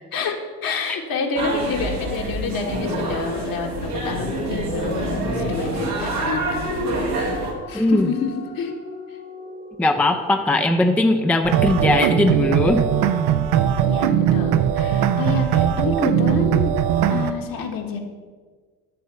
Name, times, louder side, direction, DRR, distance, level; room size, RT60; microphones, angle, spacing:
voice 1, 0.1-6.7 7.7-8.8 13.8-16.8 17.1-18.0, left 5 dB, 50° left, 3 dB, 1.5 m, -28 dB
sound 1, 1.4-7.5, right 1 dB, 85° right, 2.0 m, -26 dB
sound 2, 3.7-10.2, left 3 dB, 85° left, 1.6 m, -36 dB
voice 2, 7.7-8.1 9.8-12.9, left 2 dB, 5° left, 5 dB, 0.5 m, -19 dB
sound 3, 11.4-17.3, right 9 dB, 60° right, 0.7 m, -19 dB
11.0 x 4.2 x 6.8 m, 1.5 s
hypercardioid pair, 55°, 44 cm